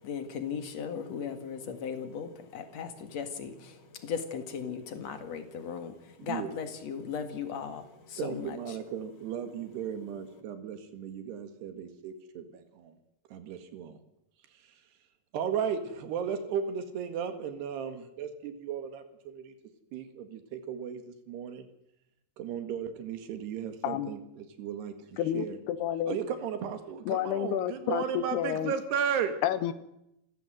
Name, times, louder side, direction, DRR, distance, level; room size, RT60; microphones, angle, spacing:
voice 1, 0.0-8.8 9.4-9.5, left 6 dB, 50° left, 8 dB, 2.7 m, -37 dB
voice 2, 6.2-6.5 8.2-12.4 12.8-12.9 13.3-13.9 15.3-19.5 19.9-21.0 21.3-21.6 22.4-25.6 26.1-29.3, right 8 dB, 85° right, 8 dB, 3.9 m, -35 dB
voice 3, 25.2-26.2 27.0-28.7 29.4-29.7, left 11 dB, 85° left, 13 dB, 3.3 m, -30 dB
28.5 x 14.5 x 7.8 m, 0.82 s
omnidirectional pair, 4.6 m